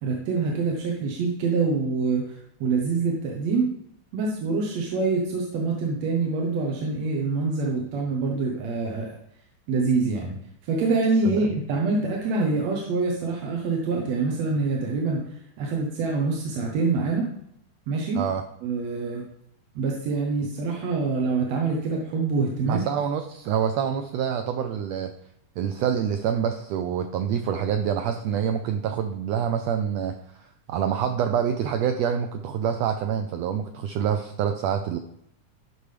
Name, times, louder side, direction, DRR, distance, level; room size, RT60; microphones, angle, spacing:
voice 1, 0.0-3.7 4.1-9.2 9.7-10.4 10.6-17.3 17.9-18.2 18.6-19.2 19.8-22.8, right 4 dB, 65° right, -1 dB, 2.0 m, -25 dB
voice 2, 22.6-25.1 25.6-35.0, right 8 dB, 90° right, 7 dB, 1.5 m, -26 dB
12.0 x 6.0 x 3.3 m, 0.75 s
omnidirectional pair, 3.6 m